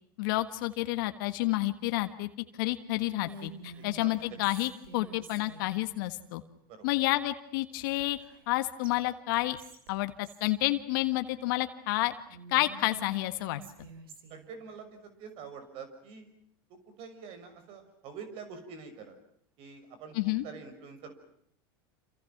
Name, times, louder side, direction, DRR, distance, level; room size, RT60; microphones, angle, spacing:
voice 1, 0.2-2.3 2.6-6.4 6.8-8.2 8.5-9.6 9.9-12.1 12.5-13.6 20.1-20.4, left 18 dB, 70° left, 9 dB, 1.6 m, -30 dB
Whispering, 2.9-5.8 7.8-8.5 8.8-8.9 9.3-10.5 12.3-14.4, right 2 dB, 85° right, 4.5 m, -48 dB
voice 2, 3.8-4.4 6.7-6.9 14.3-16.3 16.7-19.1 19.6-21.2, right 5 dB, 55° right, 9 dB, 6.2 m, -46 dB
29.0 x 27.5 x 6.0 m, 0.67 s
hypercardioid pair, 100°, 12 cm